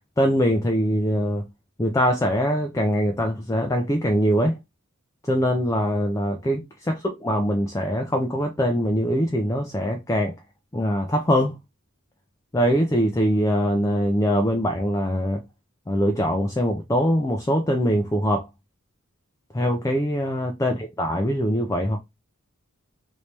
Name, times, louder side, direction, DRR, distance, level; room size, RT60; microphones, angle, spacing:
voice 1, 0.2-1.4 1.8-4.5 5.2-10.3 10.7-11.6 12.5-15.4 15.9-18.5 19.5-22.0, equal, 15° left, 0.4 m, -23 dB
3.1 x 2.8 x 3.2 m
head